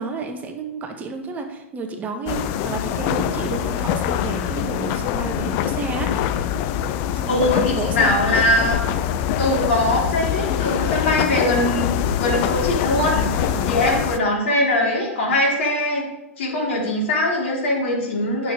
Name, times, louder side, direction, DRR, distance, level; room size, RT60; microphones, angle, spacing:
voice 1, 0.0-6.2 7.1-8.2 13.3-13.7, right 4 dB, 20° right, 4 dB, 1.6 m, -31 dB
sound 1, 2.3-14.2, left 10 dB, 40° left, 0.7 m, -24 dB
voice 2, 7.3-8.9 9.4-16.0 16.4-18.5, left 1 dB, 60° left, -2 dB, 4.3 m, -21 dB
11.0 x 6.8 x 5.0 m, 0.94 s
figure-of-eight pair, 110°, 7 cm